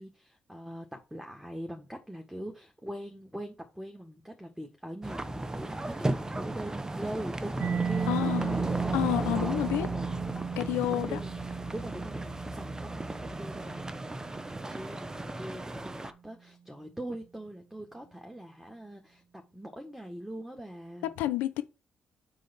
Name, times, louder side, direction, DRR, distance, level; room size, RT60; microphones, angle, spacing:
voice 1, 0.0-9.0 9.4-21.1, right 1 dB, 5° right, 1.8 m, -42 dB
sound 1, 5.0-16.1, right 1 dB, 20° right, 0.8 m, -35 dB
Mallet percussion, 7.6-15.1, right 6 dB, 55° right, 0.4 m, -35 dB
voice 2, 8.1-8.5 8.9-9.9 10.6-11.2 21.0-21.6, left 14 dB, 85° left, 0.7 m, -29 dB
6.3 x 3.9 x 5.3 m
supercardioid pair, 55°, 3 cm